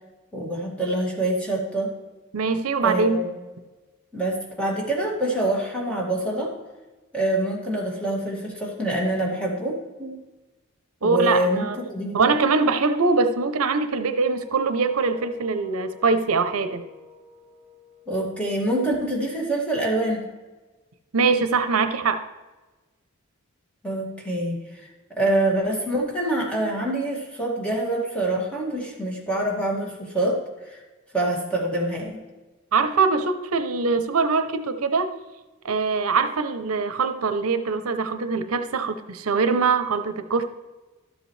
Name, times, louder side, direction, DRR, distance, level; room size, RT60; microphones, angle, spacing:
voice 1, 0.3-1.9 2.7-3.3 4.1-6.5 7.1-10.2 11.0-12.3 18.1-20.3 23.8-24.5 25.1-30.4 30.6-30.8 31.1-32.2, right 1 dB, 5° left, -3 dB, 2.2 m, -25 dB
voice 2, 2.3-3.2 11.0-11.8 12.1-16.8 21.1-22.2 32.7-35.1 35.6-40.5, right 4 dB, 85° right, 9 dB, 0.7 m, -23 dB
sound 1, 14.2-19.0, left 3 dB, 20° right, 3.3 m, -45 dB
12.5 x 8.0 x 3.2 m, 1.2 s
head